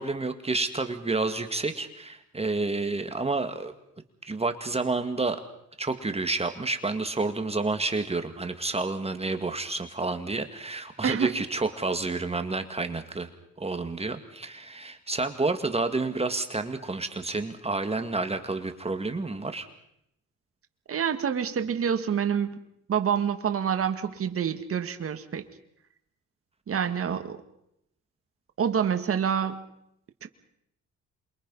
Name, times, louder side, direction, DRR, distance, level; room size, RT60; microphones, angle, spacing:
voice 1, 0.0-3.7 4.2-5.4 5.8-13.3 13.6-19.7, right 3 dB, 20° right, 8 dB, 2.0 m, -29 dB
voice 2, 20.9-22.6 22.9-25.4 26.7-27.4 28.6-29.6 30.2-30.3, right 7 dB, 50° right, 7 dB, 2.0 m, -27 dB
27.5 x 23.0 x 5.6 m, 0.78 s
cardioid pair, 90°, 30 cm